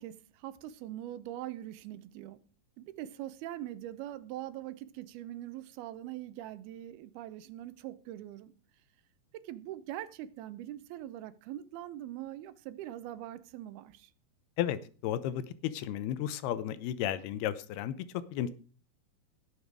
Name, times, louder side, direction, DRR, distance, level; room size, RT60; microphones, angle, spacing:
voice 1, 0.0-2.4 2.8-8.5 9.3-14.1, right 13 dB, 80° right, 2.7 m, -42 dB
voice 2, 14.6-17.9 18.3-18.5, left 11 dB, 90° left, 2.8 m, -33 dB
18.5 x 7.2 x 4.7 m
omnidirectional pair, 4.4 m